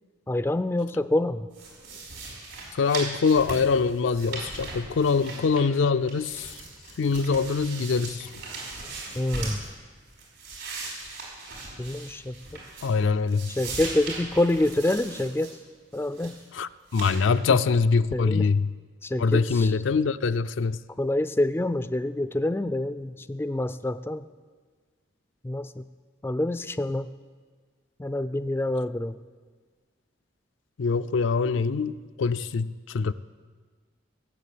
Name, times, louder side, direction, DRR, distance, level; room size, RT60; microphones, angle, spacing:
voice 1, 0.3-1.5 9.1-9.6 11.8-12.3 13.6-15.6 15.9-16.4 17.5-17.6 18.1-18.5 19.0-19.7 21.0-24.3 25.4-25.8 26.2-27.1 28.0-29.2, left 1 dB, 10° left, 0.3 m, -27 dB
sound 1, 1.5-5.8 6.1-9.7 10.1-13.0 13.3-15.5 15.9-16.4 16.9-17.2, right 3 dB, 80° right, 5.0 m, -39 dB
voice 2, 2.7-6.6 7.0-8.3 12.8-13.5 16.5-18.7 19.2-20.8 30.8-33.1, left 4 dB, 80° left, 0.4 m, -24 dB
17.0 x 7.4 x 8.5 m
head